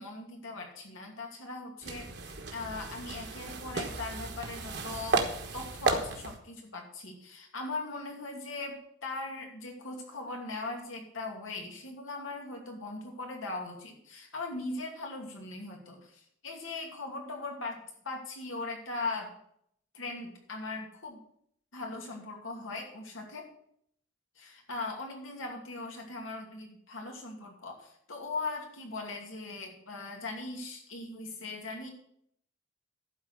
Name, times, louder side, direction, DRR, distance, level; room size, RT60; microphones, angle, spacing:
voice 1, 0.0-5.2 5.5-19.4 19.9-21.2 21.7-23.5 24.4-31.9, left 3 dB, 85° left, 1 dB, 2.5 m, -39 dB
sound 1, 1.8-6.4, right 3 dB, 55° right, 1.3 m, -34 dB
12.0 x 4.7 x 8.0 m, 0.69 s
head